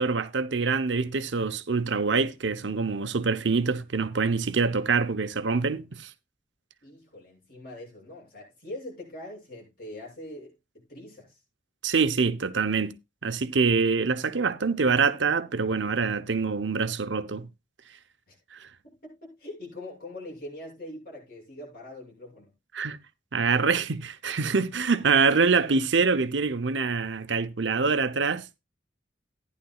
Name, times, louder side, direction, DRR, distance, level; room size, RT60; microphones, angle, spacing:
voice 1, 0.0-6.1 11.8-13.0 13.2-17.5 18.5-18.7 22.7-23.0 23.3-28.5, right 4 dB, 85° right, 0.8 m, -25 dB
voice 2, 6.8-11.4 18.3-18.4 18.8-22.5, left 1 dB, 55° left, 7.2 m, -43 dB
14.5 x 10.5 x 2.4 m
head